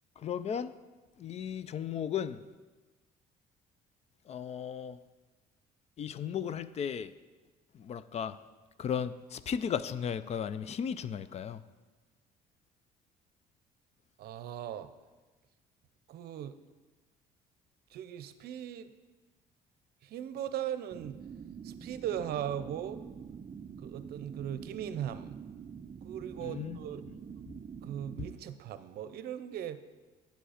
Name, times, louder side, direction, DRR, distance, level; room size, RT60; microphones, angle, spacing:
voice 1, 0.2-0.7 1.2-2.4 4.3-5.0 6.0-7.1 7.7-8.4 8.8-11.6 26.4-26.8, left 8 dB, 40° left, 15 dB, 0.4 m, -35 dB
voice 2, 14.2-14.9 16.1-16.6 17.9-18.9 20.0-21.2 21.6-23.0 23.8-25.4 26.0-27.1 27.8-29.8, right 10 dB, 70° right, 12 dB, 0.6 m, -38 dB
sound 1, 20.9-28.3, right 7 dB, 30° right, 0.4 m, -46 dB
8.9 x 7.8 x 5.0 m, 1.3 s
cardioid pair, 110°, 17 cm